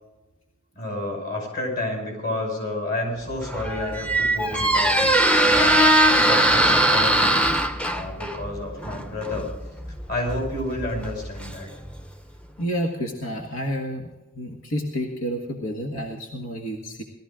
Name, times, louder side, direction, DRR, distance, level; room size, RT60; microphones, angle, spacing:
voice 1, 0.8-5.2 5.5-7.4 7.9-9.5 10.1-11.7, left 1 dB, 45° left, 1 dB, 5.6 m, -30 dB
Squeak, 3.3-12.1, right 1 dB, 5° left, 0.7 m, -21 dB
voice 2, 12.6-14.1 14.4-17.0, equal, 85° left, 2 dB, 1.7 m, -29 dB
19.5 x 13.5 x 3.7 m, 1.1 s
head